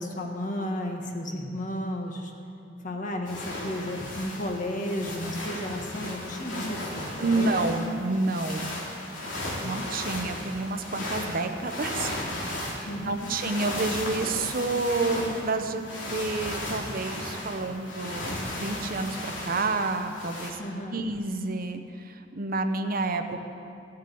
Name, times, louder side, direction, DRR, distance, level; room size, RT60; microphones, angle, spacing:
voice 1, 0.0-2.3 2.8-7.6 12.8-13.3 20.6-21.0, left 1 dB, 45° left, 2 dB, 1.5 m, -33 dB
sound 1, 3.3-20.5, left 1 dB, 85° left, 2.8 m, -35 dB
voice 2, 7.2-8.7 9.6-12.1 12.4-20.6 20.9-23.4, right 3 dB, 50° right, 7 dB, 0.8 m, -29 dB
15.5 x 7.6 x 8.5 m, 2.6 s
head